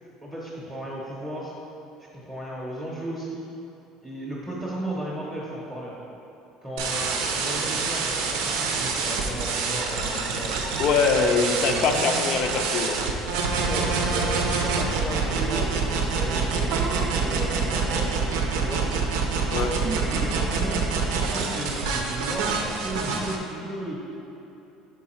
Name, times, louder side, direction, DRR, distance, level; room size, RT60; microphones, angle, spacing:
voice 1, 0.2-1.5 2.0-3.4 4.0-6.0 6.6-10.9 11.6-12.2 13.5-18.9 19.9-20.8 21.1-24.0, right 1 dB, 5° right, -5 dB, 0.7 m, -35 dB
sound 1, 6.8-23.4, right 4 dB, 90° right, 0.6 m, -26 dB
voice 2, 10.8-13.0 19.5-19.7, left 5 dB, 45° left, 4 dB, 0.3 m, -23 dB
sound 2, 14.9-15.0 15.3-15.9 16.7-17.3 18.3-19.2 19.8-20.4, right 4 dB, 40° right, 0.4 m, -34 dB
5.5 x 4.6 x 4.3 m, 3.0 s
cardioid pair, 180°, 0 cm